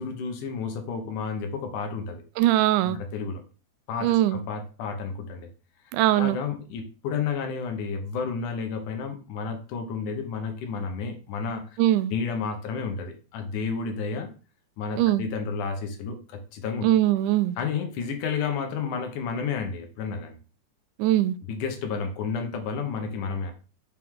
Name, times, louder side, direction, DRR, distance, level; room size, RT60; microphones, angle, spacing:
voice 1, 0.0-2.2 2.8-3.4 3.9-5.5 6.1-11.6 12.1-14.3 14.8-16.8 17.6-20.4 21.4-23.5, left 5 dB, 80° left, 2.5 m, -31 dB
voice 2, 2.4-3.0 4.0-4.4 5.9-6.4 11.8-12.1 15.0-15.3 16.8-17.6 21.0-21.4, right 14 dB, 80° right, 2.0 m, -21 dB
6.1 x 4.6 x 3.6 m
omnidirectional pair, 3.6 m